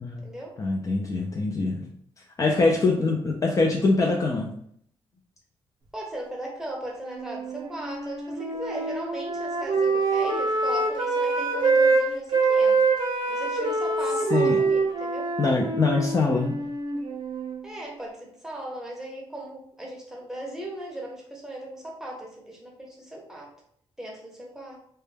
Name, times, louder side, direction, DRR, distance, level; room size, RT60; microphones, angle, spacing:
voice 1, 0.6-1.8 2.4-4.5 14.3-14.6 15.4-16.5, left 3 dB, 30° left, -1 dB, 0.3 m, -23 dB
voice 2, 5.9-12.8 13.3-15.3 17.6-23.5 24.0-24.8, right 1 dB, 5° right, -2 dB, 0.7 m, -37 dB
Wind instrument woodwind instrument, 7.1-12.0 12.3-17.6, right 3 dB, 45° right, 0.6 m, -25 dB
2.1 x 2.1 x 3.2 m, 0.67 s
cardioid pair, 115°, 10 cm